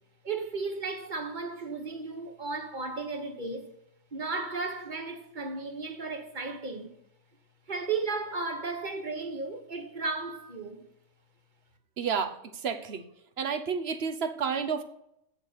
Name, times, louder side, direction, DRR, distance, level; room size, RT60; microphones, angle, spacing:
voice 1, 0.2-3.7 4.1-7.0 7.7-10.9, right 3 dB, 40° right, 1.3 m, -34 dB
voice 2, 12.0-13.0 13.4-14.8, right 6 dB, 60° right, 1.1 m, -31 dB
7.9 x 7.1 x 6.7 m
omnidirectional pair, 1.2 m